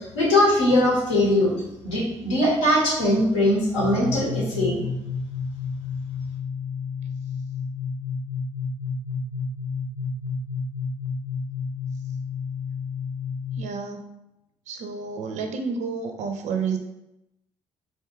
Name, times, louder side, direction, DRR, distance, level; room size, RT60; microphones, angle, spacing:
voice 1, 0.0-1.5 1.8-4.8, left 1 dB, 85° left, -5 dB, 0.8 m, -21 dB
sound 1, 3.8-13.6, left 5 dB, 55° left, 0.4 m, -31 dB
voice 2, 13.6-14.2 14.7-16.8, right 5 dB, 50° right, 5 dB, 0.4 m, -30 dB
2.6 x 2.3 x 3.5 m, 0.90 s
figure-of-eight pair, 40°, 15 cm